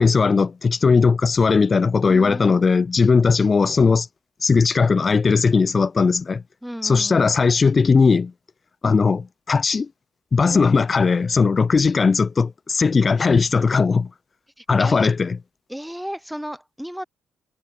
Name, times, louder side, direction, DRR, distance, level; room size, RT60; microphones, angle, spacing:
voice 1, 0.0-4.1 4.4-6.4 6.8-8.3 8.8-9.9 10.3-14.1 14.7-15.3, left 4 dB, 35° left, 6.7 m, -18 dB
voice 2, 2.1-2.6 6.6-7.3 10.5-10.7 14.6-15.1 15.7-17.1, equal, ahead, 5.8 m, -34 dB
cardioid pair, 90°, 0 cm